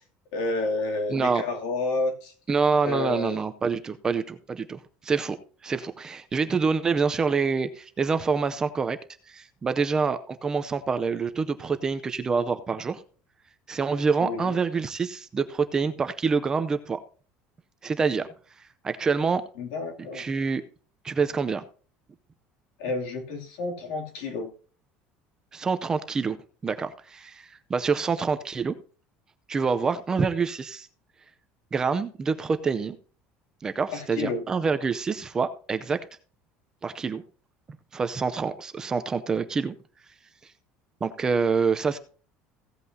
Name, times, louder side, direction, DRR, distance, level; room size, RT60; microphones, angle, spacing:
voice 1, 0.3-2.3 2.8-3.4 14.2-14.6 19.6-20.3 22.8-24.5 33.9-34.5, left 3 dB, 85° left, 2 dB, 2.7 m, -30 dB
voice 2, 1.1-1.4 2.5-5.4 5.6-9.0 9.3-13.0 13.7-17.0 17.8-18.3 18.8-19.4 20.1-20.6 21.0-21.6 25.5-26.4 26.6-28.7 29.5-30.9 31.7-33.0 33.6-36.0 36.8-37.2 37.9-39.7 41.0-42.0, right 5 dB, 15° right, 10 dB, 0.6 m, -26 dB
16.0 x 8.2 x 2.8 m, 0.40 s
cardioid pair, 175°, 4 cm